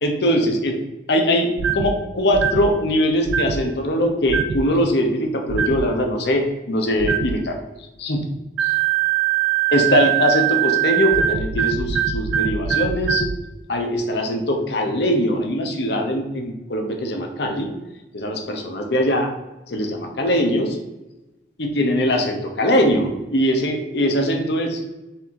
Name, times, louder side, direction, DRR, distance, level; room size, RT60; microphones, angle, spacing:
voice 1, 0.0-0.8 1.1-7.5 8.0-8.2 8.6-8.7 9.7-13.3 13.7-17.7 18.1-19.3 19.7-20.8 21.6-24.8, equal, 60° left, 3 dB, 0.8 m, -21 dB
sound 1, 1.6-1.9 2.3-2.7 3.3-3.6 4.3-4.6 5.5-5.9 7.0-7.4 8.6-13.4, right 10 dB, 90° right, 0.3 m, -22 dB
4.4 x 2.7 x 3.6 m, 1.0 s
head